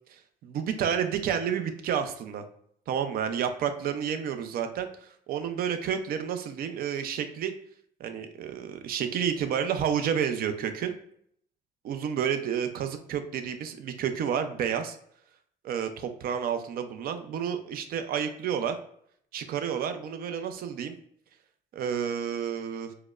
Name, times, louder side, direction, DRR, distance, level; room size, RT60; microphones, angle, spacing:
voice 1, 0.1-2.4 2.9-7.5 8.0-10.9 11.8-15.0 15.6-18.8 19.3-21.0 21.7-22.9, right 8 dB, 60° right, 8 dB, 0.5 m, -30 dB
4.6 x 2.1 x 2.4 m, 0.67 s
cardioid pair, 110°, 17 cm